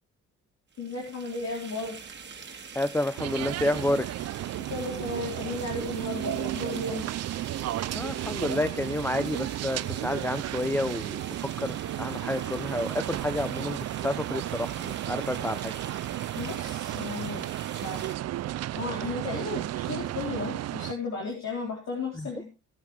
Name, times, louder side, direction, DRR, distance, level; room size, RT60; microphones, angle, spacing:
sound 1, 0.7-18.2, right 5 dB, 35° right, 2.0 m, -45 dB
voice 1, 0.8-2.0 4.7-7.0 16.4-18.2 18.7-22.4, left 3 dB, 60° left, -2 dB, 4.0 m, -34 dB
voice 2, 2.8-4.1 7.9-15.7 22.2-22.3, left 1 dB, 5° left, 11 dB, 0.6 m, -30 dB
sound 2, 3.2-20.9, right 14 dB, 60° right, 0.5 m, -33 dB
18.0 x 8.2 x 3.3 m, 0.33 s
cardioid pair, 90°, 30 cm